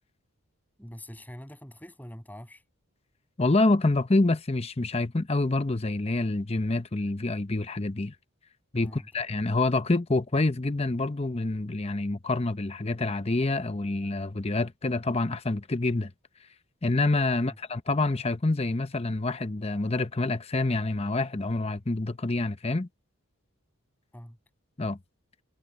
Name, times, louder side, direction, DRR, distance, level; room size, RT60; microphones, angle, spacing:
voice 1, 0.8-2.6 8.8-9.1 17.3-17.6 24.1-24.4, equal, 10° left, 6.5 m, -44 dB
voice 2, 3.4-8.1 8.7-16.1 16.8-22.9 24.8-25.0, left 2 dB, 30° left, 0.8 m, -27 dB
head